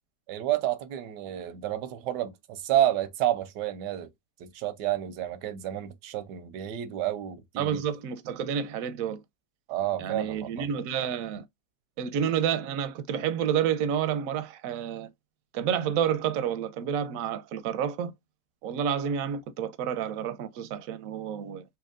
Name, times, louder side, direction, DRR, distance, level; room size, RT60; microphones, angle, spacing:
voice 1, 0.3-4.1 4.4-7.8 9.7-10.7, right 12 dB, 85° right, 1.3 m, -30 dB
voice 2, 7.6-9.2 10.0-11.4 12.0-15.1 15.5-18.1 18.6-21.6, right 8 dB, 65° right, 0.9 m, -29 dB
4.4 x 2.9 x 2.4 m
omnidirectional pair, 1.8 m